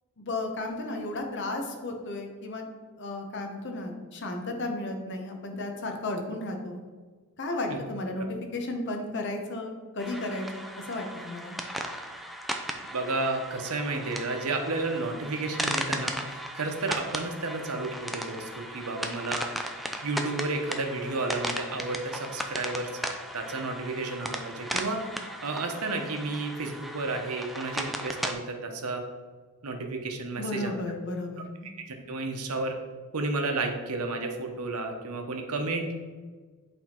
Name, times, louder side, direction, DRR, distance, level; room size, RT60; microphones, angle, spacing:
voice 1, 0.2-2.7 3.0-6.8 7.4-8.3 8.5-11.6 30.4-31.7, left 2 dB, 55° left, 3 dB, 0.9 m, -34 dB
sound 1, 10.0-28.3, equal, ahead, 0.4 m, -36 dB
voice 2, 12.9-19.4 20.0-25.0 25.4-29.0 29.6-30.8 32.1-32.8 33.1-35.9, right 3 dB, 85° right, 4 dB, 0.9 m, -32 dB
8.1 x 3.5 x 4.4 m, 1.4 s
head